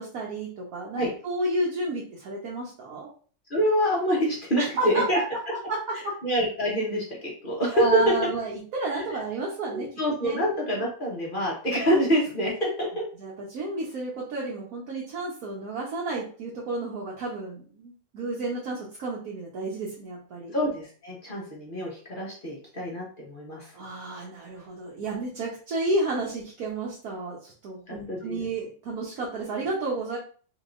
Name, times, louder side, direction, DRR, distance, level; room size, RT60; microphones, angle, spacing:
voice 1, 0.0-3.1 4.6-5.0 5.5-5.8 6.0-6.1 7.7-9.9 10.2-10.4 13.2-20.6 23.7-30.2, right 2 dB, 60° right, -4 dB, 1.1 m, -31 dB
voice 2, 3.5-5.2 6.2-8.1 9.7-13.0 20.5-23.7 27.9-28.4, equal, 40° left, -3 dB, 0.8 m, -26 dB
3.7 x 3.6 x 2.5 m, 0.42 s
omnidirectional pair, 2.0 m